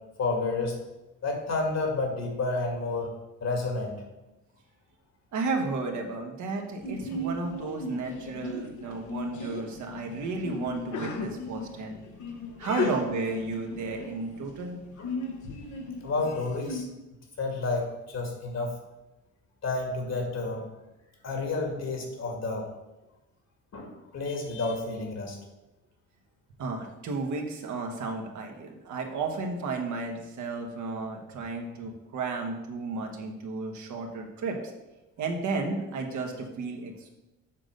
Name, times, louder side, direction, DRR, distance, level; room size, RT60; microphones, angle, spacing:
voice 1, 0.2-0.7 1.2-3.1 3.4-3.9 12.6-12.9 15.0-15.1 16.0-16.9 17.4-18.8 19.6-20.6 21.2-22.7 23.7-25.4, left 3 dB, 60° left, 2 dB, 2.1 m, -30 dB
voice 2, 5.3-12.0 12.6-14.8 26.6-34.6 35.2-37.1, right 3 dB, 75° right, 2 dB, 1.5 m, -33 dB
Sneeze, 6.8-16.8, left 2 dB, 75° left, 1.3 m, -37 dB
7.3 x 3.9 x 6.6 m, 1.0 s
cardioid pair, 90°, 30 cm